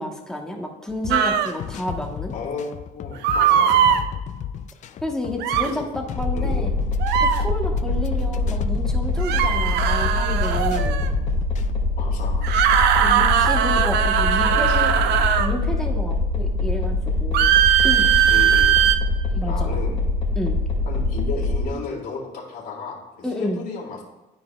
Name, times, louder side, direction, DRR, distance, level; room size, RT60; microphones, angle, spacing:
voice 1, 0.0-2.3 5.0-6.7 7.2-11.0 13.0-15.0 15.4-17.5 17.8-18.1 19.3-19.7 20.3-20.6 23.2-23.6, left 1 dB, 5° left, 0 dB, 1.1 m, -30 dB
sound 1, 0.9-11.7, left 9 dB, 45° left, 0.4 m, -35 dB
sound 2, 1.1-1.5 3.2-4.0 5.4-5.7 7.0-7.4 9.2-11.1 12.4-15.5 17.3-19.0, right 9 dB, 80° right, 0.5 m, -19 dB
voice 2, 2.3-4.1 5.6-5.8 6.3-6.7 12.0-12.6 14.2-15.2 18.3-18.7 19.4-20.0 20.9-24.0, left 4 dB, 60° left, -2 dB, 2.3 m, -34 dB
sound 3, 6.2-21.7, left 2 dB, 30° left, 2.2 m, -24 dB
11.5 x 4.7 x 2.3 m, 1.1 s
cardioid pair, 110°, 17 cm